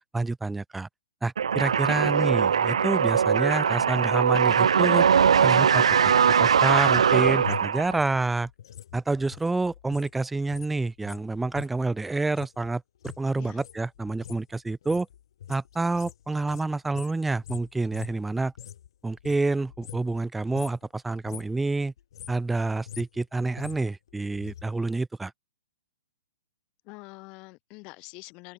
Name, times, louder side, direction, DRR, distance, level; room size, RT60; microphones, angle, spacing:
voice 1, 0.1-0.9 1.2-5.1 5.4-6.1 6.4-8.5 8.9-15.1 15.5-18.5 19.0-21.9 22.3-25.3, right 3 dB, 5° right, 0.3 m, -28 dB
sound 1, 1.4-8.1, right 7 dB, 90° right, 0.5 m, -21 dB
voice 2, 1.9-2.3 13.4-13.6 26.8-28.5, left 27 dB, 25° left, 0.9 m, -46 dB
sound 2, 6.7-10.1 10.4-18.9 19.2-20.2 20.5-20.9 21.1-21.6 22.0-24.6 24.9-25.0, left 10 dB, 50° left, 2.9 m, -44 dB
hypercardioid pair, 170°, 3 cm